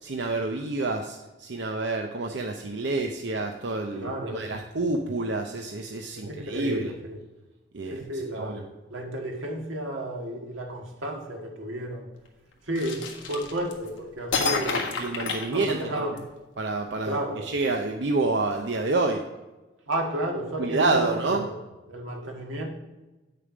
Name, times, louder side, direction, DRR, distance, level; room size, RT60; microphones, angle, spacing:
voice 1, 0.0-6.9 7.7-8.7 15.0-16.3 16.6-19.2 20.6-21.5 22.2-22.3, right 3 dB, 65° right, 3 dB, 0.7 m, -28 dB
voice 2, 4.0-4.5 6.1-7.2 7.9-12.1 12.6-14.9 15.5-16.2 17.0-17.5 19.9-21.6 21.9-22.7, right 1 dB, 90° right, 1 dB, 1.8 m, -33 dB
sound 1, 12.8-13.9 14.3-16.2, left 4 dB, 80° left, 1.6 m, -29 dB
9.1 x 6.8 x 5.0 m, 1.1 s
head